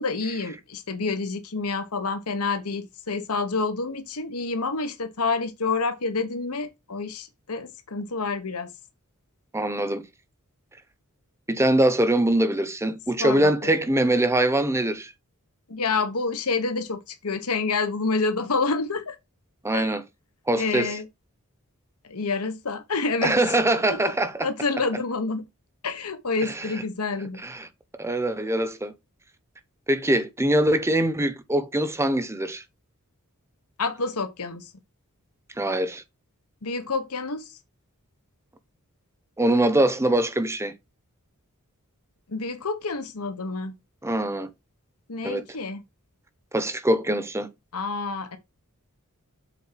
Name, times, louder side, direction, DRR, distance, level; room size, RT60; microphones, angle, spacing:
voice 1, 0.0-8.7 13.2-13.7 15.7-19.2 19.7-19.9 20.6-21.1 22.1-23.5 23.9-24.1 24.4-25.4 25.8-27.4 33.8-34.7 36.6-37.6 42.3-43.8 45.1-45.8 47.7-48.4, left 4 dB, 85° left, 1.3 m, -28 dB
voice 2, 9.5-10.0 11.5-15.1 19.6-20.0 20.5-20.9 23.2-24.5 26.5-26.7 27.4-27.7 28.0-28.9 29.9-32.6 35.6-36.0 39.4-40.7 44.0-44.5 45.2-45.4 46.5-47.5, right 1 dB, 10° right, 0.8 m, -23 dB
7.5 x 4.3 x 5.7 m
head